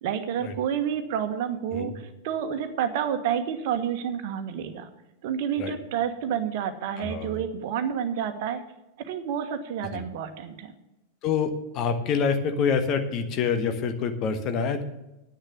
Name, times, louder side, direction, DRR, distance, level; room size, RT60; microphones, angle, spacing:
voice 1, 0.0-4.9 5.2-8.6 9.0-10.7, right 8 dB, 50° right, 8 dB, 1.3 m, -29 dB
voice 2, 7.0-7.4 9.9-10.0 11.2-14.8, left 6 dB, 35° left, 7 dB, 1.4 m, -26 dB
10.0 x 9.0 x 7.4 m, 0.93 s
figure-of-eight pair, 90°, 0 cm